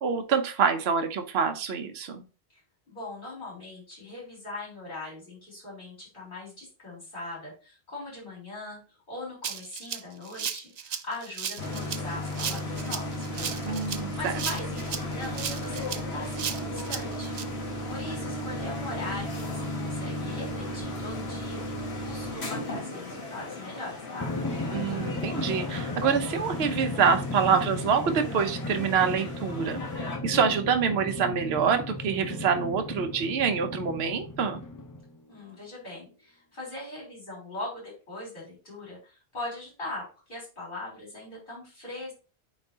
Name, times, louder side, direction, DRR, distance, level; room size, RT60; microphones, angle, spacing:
voice 1, 0.0-2.2 13.6-14.3 24.7-34.6, right 6 dB, 75° right, 7 dB, 1.0 m, -26 dB
voice 2, 2.9-8.8 9.1-24.3 35.3-42.1, left 2 dB, 50° left, -5 dB, 4.0 m, -40 dB
Rattle (instrument), 9.4-17.4, right 8 dB, 50° right, 0.5 m, -35 dB
sound 1, 11.6-30.2, left 1 dB, 80° left, 1.9 m, -35 dB
Drum, 24.2-35.2, left 2 dB, 30° left, 0.4 m, -35 dB
8.8 x 4.0 x 2.8 m, 0.34 s
omnidirectional pair, 1.1 m